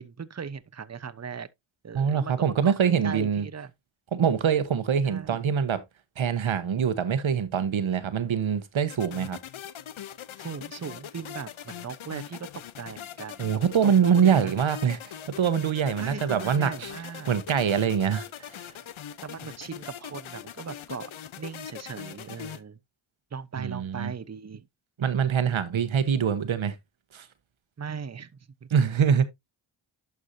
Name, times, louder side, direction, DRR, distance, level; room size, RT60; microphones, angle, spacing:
voice 1, 0.0-1.5 1.8-3.7 5.0-5.4 10.4-12.5 12.7-14.5 16.0-17.3 19.2-21.1 21.4-22.8 23.3-24.7 27.8-28.3 28.6-28.7, right 6 dB, 30° right, 0.8 m, -38 dB
voice 2, 1.9-3.5 4.1-5.8 6.2-9.4 13.4-16.9 17.3-18.3 18.5-18.6 23.6-24.1 25.0-26.8 27.1-27.2 28.7-29.3, right 7 dB, 70° right, 1.1 m, -24 dB
sound 1, 8.9-22.6, left 10 dB, 70° left, 0.8 m, -41 dB
11.5 x 4.7 x 2.7 m
cardioid pair, 50°, 49 cm